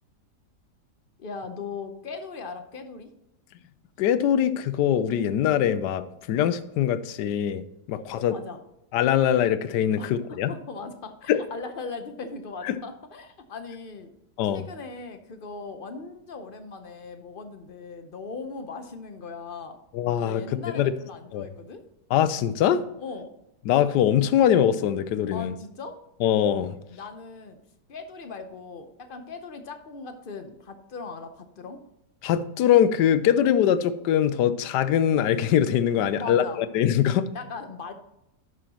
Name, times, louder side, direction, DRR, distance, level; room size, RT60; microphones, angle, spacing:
voice 1, 1.2-3.1 7.9-8.6 10.0-14.1 14.5-19.8 20.2-21.8 23.0-23.3 25.3-26.0 26.9-27.6 27.9-31.8 36.2-36.6 37.3-37.9, left 4 dB, 50° left, 8 dB, 0.6 m, -39 dB
voice 2, 4.0-6.0 6.3-8.3 8.9-10.5 11.3-11.4 12.6-12.7 14.4-14.6 19.9-20.4 20.7-20.9 21.3-21.5 22.1-22.8 23.7-25.5 26.2-26.7 32.2-36.4 36.7-37.3, left 10 dB, 90° left, 14 dB, 1.2 m, -22 dB
11.0 x 6.2 x 2.9 m, 0.87 s
omnidirectional pair, 1.8 m